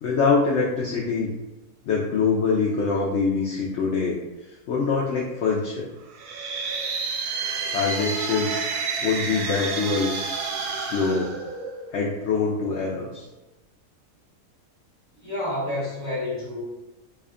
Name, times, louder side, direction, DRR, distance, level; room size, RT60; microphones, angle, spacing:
voice 1, 0.0-1.3 1.8-4.2 4.7-5.9 7.7-8.7 9.0-10.1 10.7-11.3 11.9-13.3, left 4 dB, 70° left, -4 dB, 0.6 m, -24 dB
sound 1, 6.1-12.0, right 4 dB, 80° right, 0.6 m, -30 dB
voice 2, 15.2-16.6, left 1 dB, 10° right, -9 dB, 1.1 m, -29 dB
3.3 x 2.2 x 3.6 m, 1.0 s
omnidirectional pair, 1.7 m